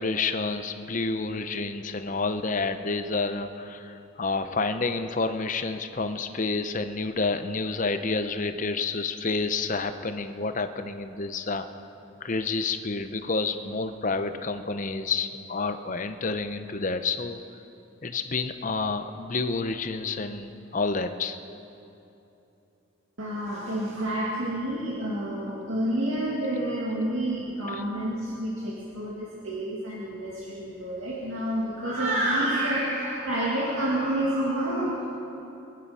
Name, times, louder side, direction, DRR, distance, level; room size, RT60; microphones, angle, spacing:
voice 1, 0.0-11.6 12.2-17.4 18.0-21.4 27.7-27.8, left 3 dB, 40° left, 9 dB, 0.7 m, -29 dB
voice 2, 23.2-35.1, right 1 dB, 85° right, -5 dB, 2.2 m, -29 dB
24.0 x 10.0 x 5.6 m, 2.9 s
head